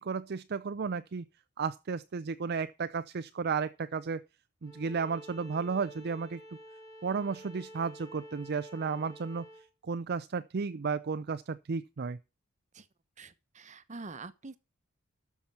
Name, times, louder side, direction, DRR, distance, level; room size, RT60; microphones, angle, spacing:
voice 1, 0.0-1.2 1.6-4.2 4.6-6.4 7.0-9.5 9.8-12.2, right 5 dB, 50° right, 0.5 m, -33 dB
Bowed string instrument, 4.6-9.7, equal, 15° left, 2.6 m, -50 dB
voice 2, 13.2-14.6, right 3 dB, 35° right, 1.0 m, -45 dB
13.0 x 6.0 x 5.6 m
head